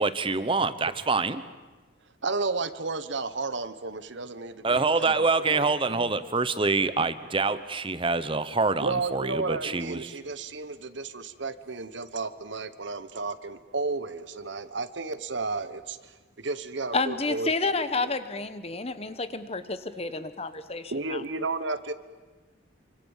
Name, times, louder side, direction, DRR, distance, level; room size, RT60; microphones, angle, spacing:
voice 1, 0.0-1.4 4.6-10.2, right 3 dB, 25° right, 13 dB, 0.9 m, -26 dB
voice 2, 2.2-6.1 8.8-16.1 16.4-18.1 20.9-21.9, right 3 dB, 65° right, 12 dB, 1.2 m, -33 dB
voice 3, 16.9-21.2, left 3 dB, 30° left, 12 dB, 1.1 m, -30 dB
27.0 x 25.5 x 7.3 m, 1.3 s
head